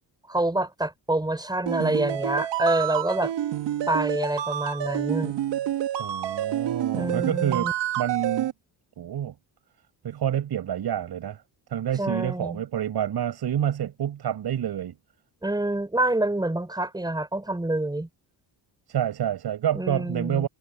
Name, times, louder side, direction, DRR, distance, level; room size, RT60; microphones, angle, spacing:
voice 1, 0.3-3.3 3.9-5.3 6.9-7.7 12.0-12.6 15.4-18.1 19.7-20.5, right 1 dB, 10° right, 4.4 m, -27 dB
sound 1, 1.7-8.5, right 12 dB, 85° right, 1.8 m, -28 dB
voice 2, 6.0-8.5 9.0-9.3 10.0-11.4 11.7-15.0 18.9-20.5, right 10 dB, 65° right, 7.8 m, -28 dB
cardioid pair, 115°, 42 cm